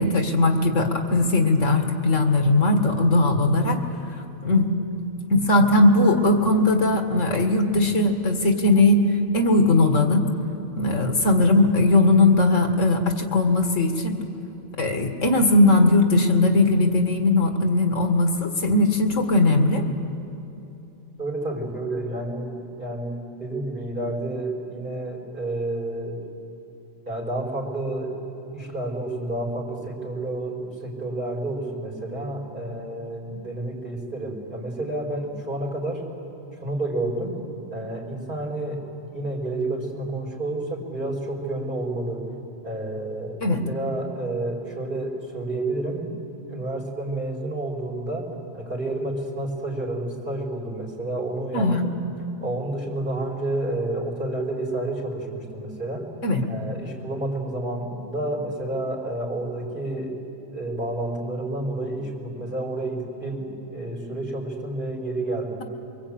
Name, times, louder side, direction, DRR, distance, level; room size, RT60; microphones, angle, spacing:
voice 1, 0.0-3.8 4.4-4.7 5.3-9.0 9.3-10.3 10.8-14.1 14.8-19.8 43.4-43.6 51.5-51.9 56.2-56.4, left 2 dB, 85° left, 5 dB, 2.2 m, -19 dB
voice 2, 21.2-26.2 27.1-28.2 28.5-36.0 36.6-37.4 37.7-42.2 42.6-46.1 46.5-51.9 52.4-56.1 56.5-60.2 60.5-65.6, right 2 dB, 40° right, -2 dB, 5.2 m, -30 dB
23.5 x 23.0 x 8.8 m, 2.9 s
omnidirectional pair, 1.3 m